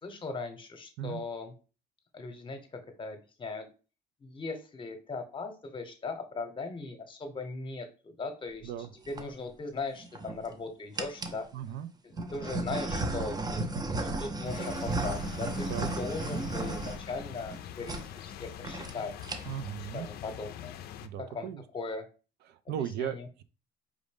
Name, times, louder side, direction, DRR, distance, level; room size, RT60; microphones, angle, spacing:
voice 1, 0.0-1.5 2.1-2.6 3.0-3.7 4.2-8.7 9.1-11.5 12.0-13.6 14.0-19.1 19.9-20.7 21.2-22.1 22.7-23.3, left 3 dB, 30° left, 6 dB, 0.9 m, -39 dB
sound 1, 8.8-9.2 10.0-10.5 11.0-11.4 12.1-17.6 17.8-18.0 18.3-18.4 18.6-18.9 19.2-19.7, right 2 dB, 25° right, 0.6 m, -34 dB
voice 2, 11.5-11.9 15.6-15.9 19.5-20.1 21.0-21.6 22.5-23.4, right 10 dB, 75° right, 11 dB, 0.4 m, -37 dB
sound 2, 14.4-21.1, left 11 dB, 65° left, 0.4 m, -44 dB
4.9 x 2.6 x 3.5 m, 0.34 s
cardioid pair, 110°, 17 cm